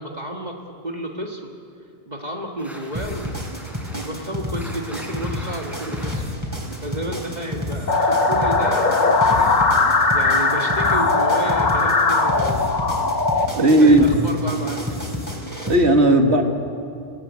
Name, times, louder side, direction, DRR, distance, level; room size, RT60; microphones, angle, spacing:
voice 1, 0.0-1.5 2.1-3.5 3.9-9.8 10.1-12.7 13.6-15.0, right 1 dB, 40° right, 1 dB, 1.9 m, -31 dB
sound 1, 2.6-8.2, equal, ahead, 4.1 m, -42 dB
sound 2, 2.9-15.7, left 1 dB, 15° right, 4.4 m, -30 dB
sound 3, 7.9-13.5, left 3 dB, 45° left, 1.3 m, -19 dB
voice 2, 13.5-14.3 15.6-16.4, right 1 dB, 80° right, 4 dB, 2.2 m, -15 dB
27.0 x 18.5 x 9.7 m, 2.4 s
omnidirectional pair, 1.1 m